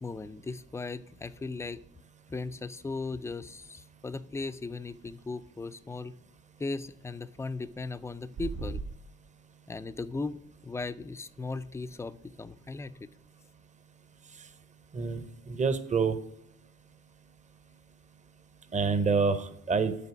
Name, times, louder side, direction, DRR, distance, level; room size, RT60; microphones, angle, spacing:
voice 1, 0.0-1.8 2.3-6.1 6.6-8.8 9.7-10.4 10.6-13.1, left 3 dB, 10° left, 13 dB, 0.3 m, -37 dB
sound 1, 8.3-8.9, right 4 dB, 90° right, 1.2 m, -35 dB
voice 2, 14.9-16.2 18.7-20.0, right 5 dB, 25° right, 11 dB, 0.7 m, -27 dB
6.8 x 4.1 x 5.8 m, 0.78 s
cardioid pair, 90°, 30 cm